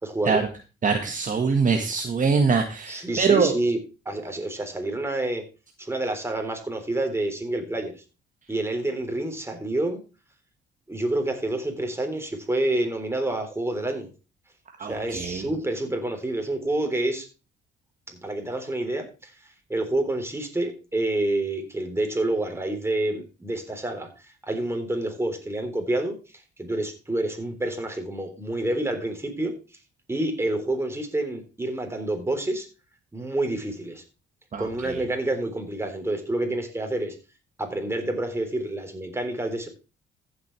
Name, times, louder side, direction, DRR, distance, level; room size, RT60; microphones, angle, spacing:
voice 1, 0.0-0.4 2.9-3.8 4.1-5.4 5.8-7.9 8.5-10.0 10.9-14.1 14.8-17.3 18.1-19.3 19.7-29.5 30.1-32.7 33.1-34.0 34.6-37.2 37.6-39.7, right 1 dB, 10° right, 4 dB, 3.6 m, -28 dB
voice 2, 0.8-3.5 14.8-15.4 34.5-34.6, right 5 dB, 40° right, 5 dB, 1.6 m, -23 dB
15.0 x 7.7 x 3.3 m, 0.32 s
cardioid pair, 90°, 20 cm